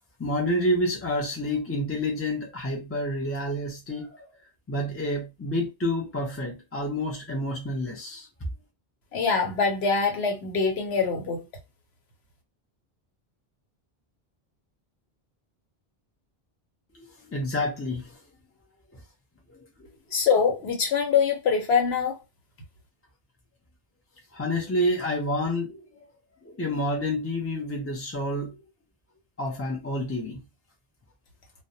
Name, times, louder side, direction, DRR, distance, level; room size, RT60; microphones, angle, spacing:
voice 1, 0.2-4.3 4.7-8.3 16.9-18.2 18.9-19.0 19.5-19.9 24.3-25.9 26.4-28.6 29.4-30.4, left 1 dB, 25° left, 0.3 m, -29 dB
voice 2, 9.1-11.4 20.1-22.2, left 5 dB, 80° left, 1.1 m, -24 dB
2.2 x 2.1 x 2.7 m
omnidirectional pair, 1.1 m